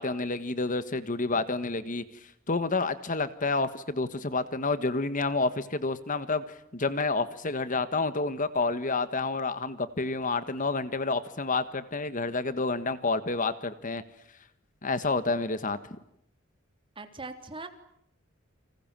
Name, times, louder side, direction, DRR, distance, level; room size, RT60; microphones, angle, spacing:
voice 1, 0.0-14.0 14.8-15.8, left 3 dB, 40° left, 12 dB, 1.5 m, -29 dB
voice 2, 17.0-17.7, right 3 dB, 25° right, 7 dB, 3.3 m, -40 dB
30.0 x 25.5 x 7.6 m, 0.75 s
head